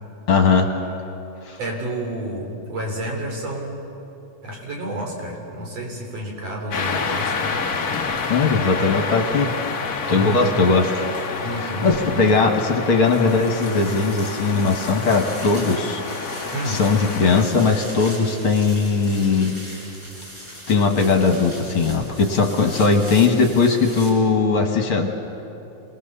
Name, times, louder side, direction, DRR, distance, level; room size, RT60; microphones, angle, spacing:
voice 1, 0.3-0.7 1.5-1.6 8.3-9.5 10.1-10.9 11.6-16.0 16.7-19.5 20.7-25.1, left 4 dB, 50° left, 3 dB, 2.0 m, -19 dB
voice 2, 1.6-3.8 4.4-7.6 10.1-10.8 11.4-12.4 16.5-16.8, equal, 50° right, -1 dB, 4.7 m, -30 dB
sound 1, 6.7-17.4, left 4 dB, 65° left, 0.9 m, -28 dB
sound 2, 13.0-24.1, equal, 30° right, 5.7 m, -39 dB
27.0 x 20.0 x 6.9 m, 2.9 s
omnidirectional pair, 3.7 m